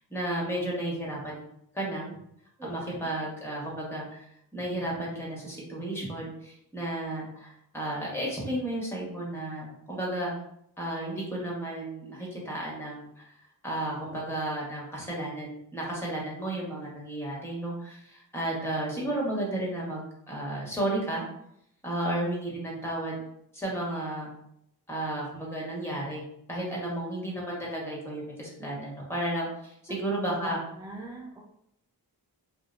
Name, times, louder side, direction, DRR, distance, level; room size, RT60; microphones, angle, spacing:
voice 1, 0.1-1.4 1.7-2.1 2.6-4.2 4.5-10.3 10.8-13.3 13.6-21.2 21.8-23.1 23.5-24.3 24.9-30.6, right 1 dB, 5° left, -4 dB, 1.2 m, -33 dB
voice 2, 2.6-2.9 29.9-30.1 30.4-31.4, right 2 dB, 10° right, -2 dB, 0.4 m, -40 dB
2.7 x 2.1 x 2.5 m, 0.75 s
cardioid pair, 40°, 41 cm